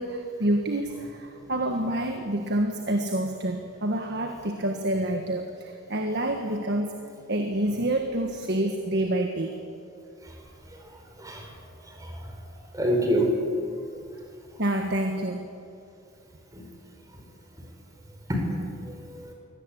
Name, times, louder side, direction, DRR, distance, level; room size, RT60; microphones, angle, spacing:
voice 1, 0.0-6.9 7.3-9.5 14.6-15.5, right 1 dB, 55° right, 4 dB, 1.6 m, -27 dB
voice 2, 11.9-12.2 12.7-13.3 16.5-16.6 18.3-18.4 18.9-19.3, right 1 dB, 15° right, 1 dB, 4.7 m, -27 dB
23.5 x 18.0 x 8.6 m, 2.5 s
head